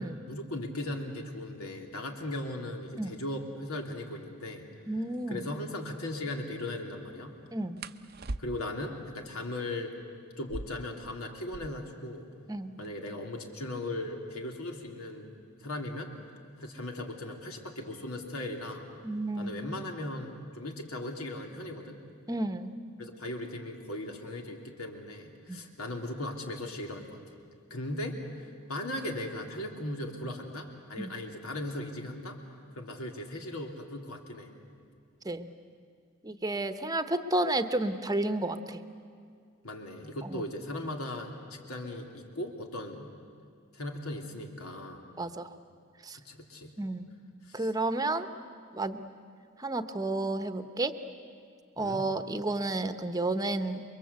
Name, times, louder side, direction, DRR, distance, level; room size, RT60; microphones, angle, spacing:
voice 1, 0.0-4.7 5.3-7.3 8.4-9.9 10.4-12.3 12.8-16.1 16.6-18.9 19.4-22.0 23.0-27.2 27.7-28.2 28.7-32.4 32.7-34.5 39.6-43.1 43.7-45.0 46.1-46.7 47.5-47.7 51.8-52.0, left 1 dB, 80° left, 2 dB, 3.1 m, -38 dB
voice 2, 4.9-5.5 7.5-7.8 12.5-12.8 19.0-19.6 22.3-22.7 25.5-25.6 31.0-31.1 35.2-35.5 36.2-38.8 40.2-40.4 45.2-45.5 46.0-46.2 46.8-47.1 47.5-48.3 48.7-49.0 49.6-50.9 51.8-53.8, right 2 dB, 15° right, 9 dB, 1.0 m, -31 dB
sound 1, 5.1-5.3 7.8-8.9 10.3-12.0 12.3-12.4 12.6-13.2 13.8-16.4 17.4-17.7 18.1-18.5 18.9-19.6, right 2 dB, 45° right, 0.7 m, -44 dB
29.5 x 23.0 x 8.2 m, 2.3 s
head